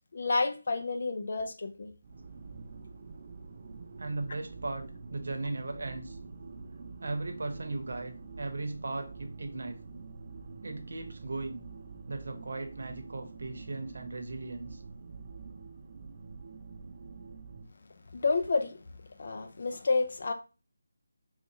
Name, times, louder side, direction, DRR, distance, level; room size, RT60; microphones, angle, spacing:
voice 1, 0.1-1.9 18.1-18.8 19.2-20.3, left 3 dB, 55° left, 0.5 m, -30 dB
sound 1, 2.0-17.7, right 4 dB, 40° right, 0.5 m, -46 dB
voice 2, 4.0-6.2 7.0-9.8 10.6-11.6 12.1-14.8, right 2 dB, 65° right, 0.8 m, -37 dB
3.8 x 2.4 x 2.8 m
figure-of-eight pair, 160°, 0 cm